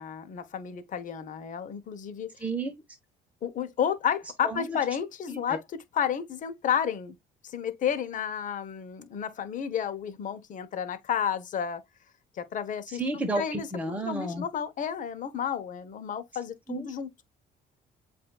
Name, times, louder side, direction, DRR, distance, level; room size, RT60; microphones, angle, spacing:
voice 1, 0.0-2.3 3.4-7.2 7.4-11.8 12.3-13.0 13.4-13.7 14.1-17.1, left 8 dB, 50° left, 1.0 m, -31 dB
voice 2, 2.4-2.7 4.4-4.8 5.3-5.6 12.9-14.4 16.7-16.9, right 2 dB, 10° right, 1.2 m, -32 dB
7.7 x 2.7 x 2.3 m
cardioid pair, 110°, 17 cm